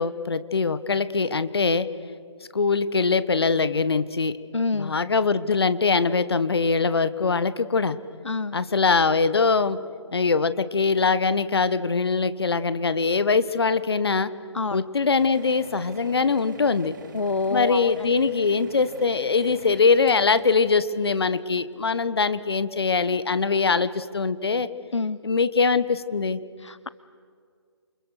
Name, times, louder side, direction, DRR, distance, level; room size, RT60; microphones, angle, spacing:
voice 1, 0.0-1.9 2.5-4.4 4.7-8.0 8.5-9.8 10.1-14.3 14.7-16.9 17.5-24.7 25.2-26.4, left 4 dB, 60° left, 14 dB, 1.4 m, -22 dB
voice 2, 4.5-4.9 8.2-8.6 14.5-14.8 17.1-18.1 24.9-25.2 26.6-26.9, left 4 dB, 80° left, 17 dB, 0.6 m, -27 dB
sound 1, 15.2-22.1, right 5 dB, 40° right, 2.1 m, -45 dB
28.5 x 28.0 x 6.5 m, 2.1 s
figure-of-eight pair, 140°, 15 cm